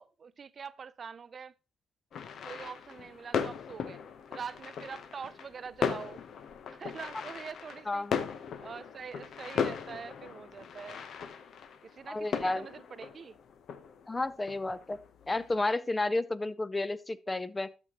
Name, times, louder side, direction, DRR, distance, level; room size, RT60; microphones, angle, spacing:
voice 1, 0.0-1.5 2.4-4.0 4.3-6.2 6.7-8.1 8.6-11.0 11.8-13.4, right 6 dB, 45° right, 0.3 m, -44 dB
sound 1, 2.1-15.6, left 6 dB, 65° left, 0.8 m, -38 dB
voice 2, 7.9-8.3 12.1-12.7 14.1-15.0 15.3-17.7, left 2 dB, 20° left, 0.5 m, -31 dB
12.0 x 6.0 x 2.9 m
cardioid pair, 90°, 0 cm